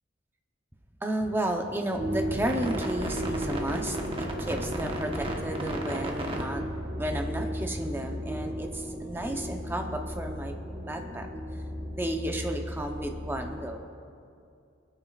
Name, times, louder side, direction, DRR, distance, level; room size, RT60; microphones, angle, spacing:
voice 1, 1.0-6.6 6.9-10.5 10.9-11.3 11.9-13.9, right 1 dB, 10° right, 3 dB, 0.8 m, -33 dB
sound 1, 2.0-13.8, equal, 30° right, 1.1 m, -34 dB
26.0 x 8.9 x 2.4 m, 2.5 s
head